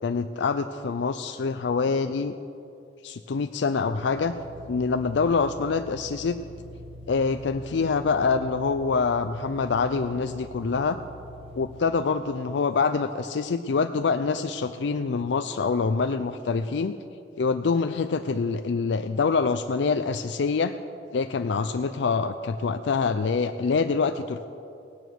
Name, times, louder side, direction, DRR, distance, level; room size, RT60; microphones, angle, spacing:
voice 1, 0.0-2.3 3.0-4.3 4.7-6.4 7.1-11.0 11.5-17.0 17.4-20.7 21.1-24.5, left 4 dB, 75° left, 8 dB, 0.4 m, -25 dB
sound 1, 4.0-11.8, left 1 dB, 35° right, 1.5 m, -44 dB
17.5 x 9.2 x 6.2 m, 2.6 s
head